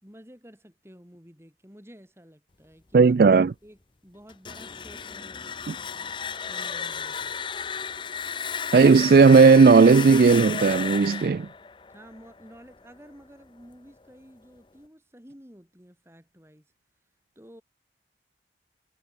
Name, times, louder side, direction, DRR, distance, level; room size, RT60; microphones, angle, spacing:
voice 1, 0.0-3.2 3.6-6.1 6.5-7.4 11.9-16.7 17.4-17.6, equal, 15° right, 5.6 m, -51 dB
voice 2, 2.9-3.5 5.7-5.8 8.7-11.5, right 4 dB, 55° right, 0.4 m, -15 dB
sound 1, 4.3-13.1, left 6 dB, 25° left, 0.5 m, -34 dB
head